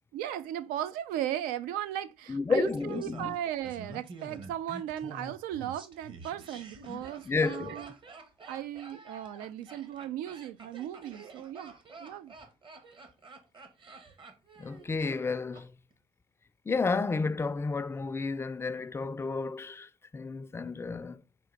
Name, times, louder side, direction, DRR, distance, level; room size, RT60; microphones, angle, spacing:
voice 1, 0.1-7.9 8.5-11.7 12.0-12.3, right 11 dB, 85° right, 0.4 m, -36 dB
voice 2, 2.3-3.4 6.9-7.0 7.3-7.8 14.6-15.7 16.7-21.2, left 4 dB, 15° left, 0.3 m, -31 dB
Laughter, 2.6-15.6 15.9-16.0, right 3 dB, 35° right, 1.0 m, -48 dB
3.7 x 2.5 x 4.5 m
supercardioid pair, 85°, 14 cm